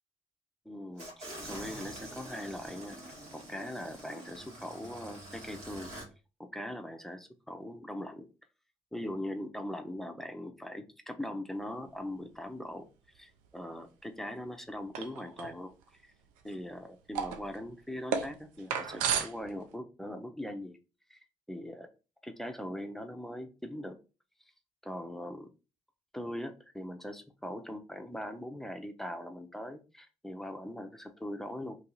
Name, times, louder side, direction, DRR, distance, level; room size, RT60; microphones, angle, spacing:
voice 1, 0.6-3.0 3.3-5.9 6.4-8.3 8.9-12.9 13.1-15.7 16.4-20.8 21.1-21.2 21.5-21.9 22.2-24.0 24.8-25.5 26.1-31.7, left 1 dB, 5° left, 6 dB, 0.8 m, -41 dB
sound 1, 1.0-6.1, right 1 dB, 65° right, 1.7 m, -46 dB
sound 2, 14.9-15.5 15.8-15.9 16.5-16.8 17.1-19.7, right 7 dB, 85° right, 0.5 m, -33 dB
3.1 x 2.7 x 3.9 m, 0.32 s
hypercardioid pair, 50°, 13 cm